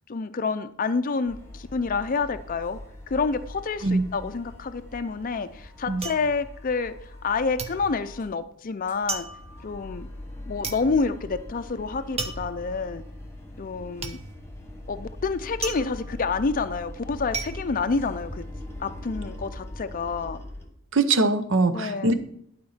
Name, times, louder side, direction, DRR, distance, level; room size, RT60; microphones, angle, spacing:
voice 1, 0.1-2.8 3.1-6.9 7.2-9.3 9.6-10.1 10.5-13.0 13.6-14.2 14.9-18.4 18.8-20.4 21.7-22.1, left 4 dB, 40° left, 10 dB, 0.5 m, -28 dB
sound 1, 1.3-8.4 8.7-20.7, left 1 dB, 10° left, 1.4 m, -41 dB
sound 2, 4.9-7.3 7.6-18.7 19.0-19.6, right 4 dB, 30° right, 0.8 m, -37 dB
voice 2, 20.9-22.1, right 3 dB, 60° right, 10 dB, 0.8 m, -22 dB
11.5 x 4.3 x 5.7 m, 0.69 s
head